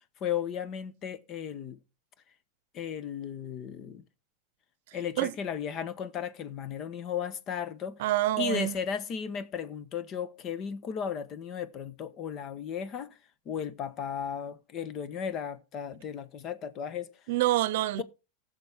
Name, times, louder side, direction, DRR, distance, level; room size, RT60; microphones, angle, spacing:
voice 1, 0.2-1.8 2.7-4.0 4.9-8.0 8.4-13.2 13.4-17.2, left 8 dB, 40° left, 1.1 m, -35 dB
voice 2, 8.0-8.7 17.3-18.0, right 15 dB, 70° right, 0.7 m, -26 dB
16.0 x 6.9 x 3.6 m
supercardioid pair, 125°, 0 cm